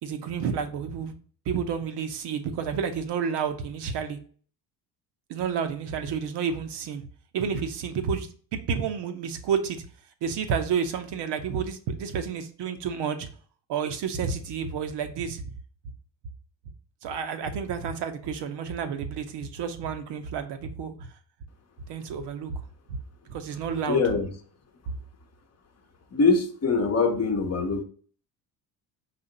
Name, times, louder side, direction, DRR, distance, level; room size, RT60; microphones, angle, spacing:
voice 1, 0.0-1.2 1.5-4.2 5.3-7.1 7.3-9.8 10.2-13.3 13.7-15.5 17.0-21.1 21.9-23.0 23.3-24.0 24.9-25.0, right 6 dB, 65° right, 0.8 m, -30 dB
voice 2, 23.9-24.3 26.1-27.8, left 4 dB, 35° left, 0.9 m, -23 dB
4.2 x 2.8 x 3.9 m
supercardioid pair, 80°, 45 cm